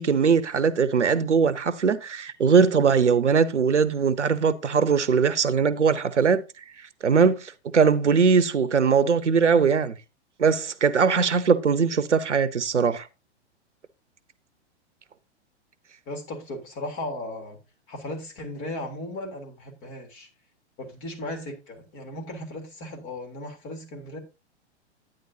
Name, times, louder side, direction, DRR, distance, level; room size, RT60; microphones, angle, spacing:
voice 1, 0.0-6.4 7.0-9.9 10.4-13.0, right 6 dB, 85° right, 0.9 m, -21 dB
voice 2, 16.1-17.6 17.9-20.3 20.8-24.2, left 1 dB, 35° left, 3.4 m, -36 dB
11.0 x 9.4 x 2.8 m
figure-of-eight pair, 105°, 35 cm